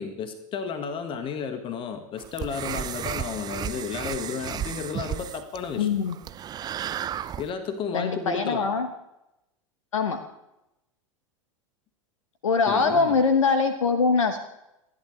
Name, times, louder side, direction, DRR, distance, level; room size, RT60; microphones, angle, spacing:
voice 1, 0.0-5.9 7.4-8.7 12.6-13.2, left 6 dB, 30° left, 9 dB, 1.6 m, -32 dB
sound 1, 2.2-7.5, right 10 dB, 25° right, 0.6 m, -33 dB
voice 2, 5.8-6.2 7.9-8.9 9.9-10.2 12.4-14.4, left 4 dB, 70° left, 8 dB, 1.2 m, -22 dB
28.5 x 11.5 x 3.3 m, 0.89 s
figure-of-eight pair, 90°, 17 cm